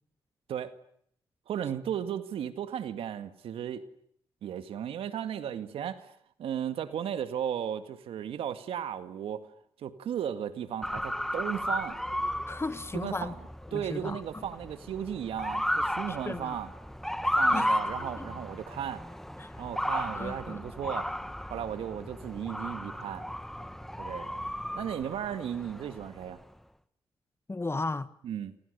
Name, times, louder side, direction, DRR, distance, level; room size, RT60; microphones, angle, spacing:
voice 1, 1.5-3.8 4.4-6.1 6.4-9.5 9.8-12.0 12.9-13.4 13.7-16.7 17.4-19.0 19.6-21.1 21.5-23.2 24.0-24.4 24.7-26.4 28.2-28.5, right 9 dB, 85° right, 2.1 m, -35 dB
Motor vehicle (road) / Siren, 10.8-26.4, equal, 5° left, 1.7 m, -34 dB
voice 2, 12.5-13.3 13.7-14.2 16.2-16.6 17.5-18.3 19.4-19.5 20.1-20.7 27.5-28.1, left 3 dB, 25° left, 1.6 m, -35 dB
29.5 x 28.0 x 6.9 m
supercardioid pair, 50°, 9 cm